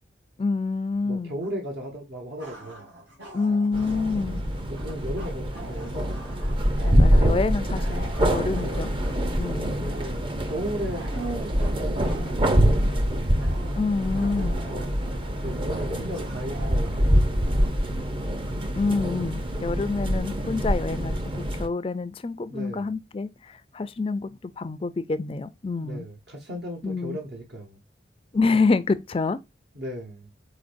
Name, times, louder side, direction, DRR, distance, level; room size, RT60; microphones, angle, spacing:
voice 1, 0.4-1.3 3.3-4.4 6.8-8.9 9.4-9.9 13.8-14.6 18.7-24.3 24.6-26.1 26.8-27.2 28.3-29.4, left 3 dB, 30° left, 0.4 m, -27 dB
voice 2, 1.0-2.9 4.7-6.1 8.6-9.0 9.8-13.3 14.5-15.1 15.4-18.2 22.5-22.9 25.8-27.8 29.7-30.3, right 1 dB, 65° right, 0.9 m, -36 dB
sound 1, 1.4-1.5 2.4-17.8, right 1 dB, 90° right, 2.3 m, -45 dB
sound 2, 3.7-21.7, equal, 30° right, 0.6 m, -25 dB
5.0 x 4.2 x 2.5 m
head